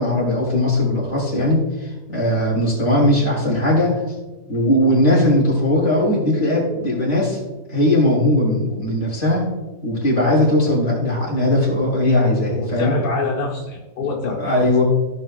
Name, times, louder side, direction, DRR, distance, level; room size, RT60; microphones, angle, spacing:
voice 1, 0.0-3.9 4.5-7.4 7.7-9.5 9.8-13.0 14.4-14.8, left 1 dB, 40° left, -5 dB, 3.7 m, -18 dB
voice 2, 12.5-14.7, left 3 dB, 85° left, -4 dB, 1.9 m, -26 dB
16.0 x 5.6 x 2.5 m, 1.1 s
omnidirectional pair, 1.8 m